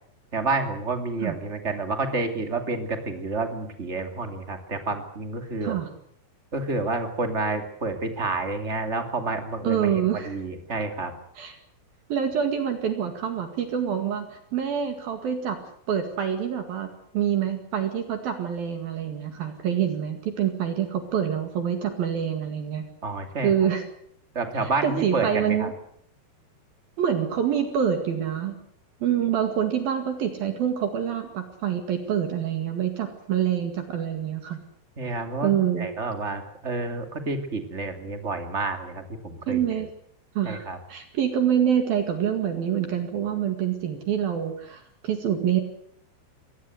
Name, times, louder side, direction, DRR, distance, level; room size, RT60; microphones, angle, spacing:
voice 1, 0.3-5.8 6.5-11.1 23.0-23.5 24.3-25.7 35.0-39.8 40.4-40.8, right 3 dB, 25° right, 6 dB, 1.5 m, -29 dB
voice 2, 9.6-10.4 11.4-11.6 12.1-15.6 15.9-16.9 17.1-22.8 23.4-23.8 24.6-25.7 27.0-28.6 29.0-34.6 35.4-35.9 39.5-39.9 40.3-45.6, right 9 dB, 55° right, 6 dB, 3.4 m, -26 dB
24.0 x 18.5 x 7.9 m, 0.66 s
omnidirectional pair, 5.6 m